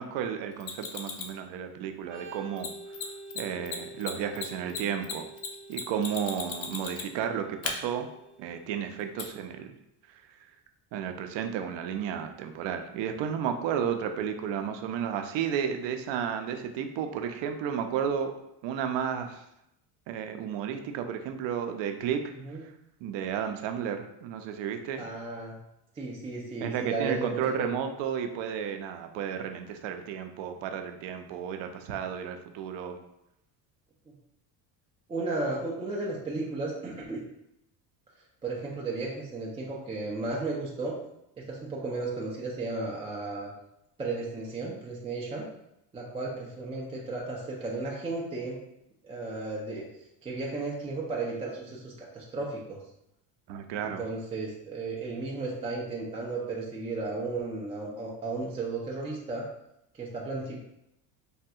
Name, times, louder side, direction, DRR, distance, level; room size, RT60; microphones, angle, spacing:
voice 1, 0.0-2.7 3.3-5.3 5.7-8.1 8.4-9.7 10.9-18.4 18.6-19.4 20.1-22.3 23.0-25.1 26.6-33.0 53.5-54.0, right 8 dB, 60° right, 7 dB, 0.5 m, -32 dB
Mechanisms, 0.6-1.4 2.6-2.7 2.9-3.0 3.3-3.4 3.7-7.2 7.6-7.7 9.2-9.3, left 7 dB, 60° left, 0.7 m, -35 dB
Organ, 2.0-9.5, right 2 dB, 40° right, 1.0 m, -48 dB
voice 2, 25.0-25.6 26.0-27.7 34.1-34.2 35.1-37.2 38.4-41.0 41.4-43.5 44.0-45.5 45.9-48.6 49.0-49.9 50.2-52.8 53.8-59.5 59.9-60.6, right 3 dB, 15° right, -3 dB, 0.3 m, -34 dB
3.4 x 2.2 x 2.7 m, 0.82 s
supercardioid pair, 100°, 49 cm